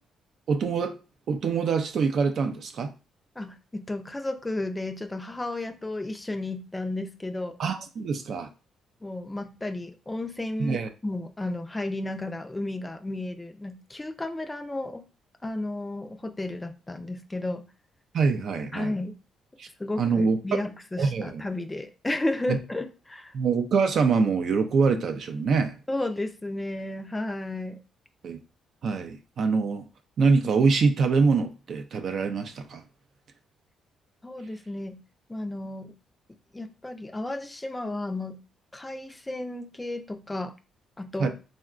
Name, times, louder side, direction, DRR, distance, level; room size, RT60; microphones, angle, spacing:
voice 1, 0.5-1.0 1.3-2.9 7.6-8.5 10.6-10.9 18.1-18.9 19.6-19.7 20.0-20.6 21.0-21.4 22.5-22.6 23.3-25.7 28.2-28.4 28.8-29.8 30.2-32.8 41.2-41.3, right 5 dB, 60° right, 0.4 m, -24 dB
voice 2, 3.4-7.6 9.0-10.8 11.0-15.1 15.4-17.7 18.7-19.2 19.8-23.3 25.9-27.8 34.2-35.0 35.3-35.9 36.5-38.4 38.7-40.5 41.0-41.3, left 2 dB, 15° left, 0.4 m, -33 dB
3.6 x 2.1 x 2.4 m
cardioid pair, 90°, 0 cm